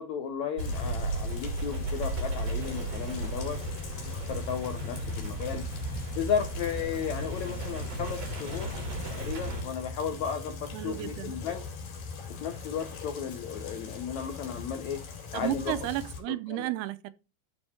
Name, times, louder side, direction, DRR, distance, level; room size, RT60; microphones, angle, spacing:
voice 1, 0.0-3.6 4.0-5.6 6.1-8.7 9.1-11.6 12.3-15.0 15.3-15.8 16.5-16.7, left 7 dB, 85° left, 1.6 m, -34 dB
Rain, 0.6-16.2, left 4 dB, 60° left, 3.9 m, -40 dB
sound 1, 0.6-9.6, right 1 dB, 60° right, 6.8 m, -35 dB
voice 2, 10.7-11.4 15.3-17.1, right 16 dB, 80° right, 2.6 m, -33 dB
12.5 x 4.3 x 4.4 m
omnidirectional pair, 4.6 m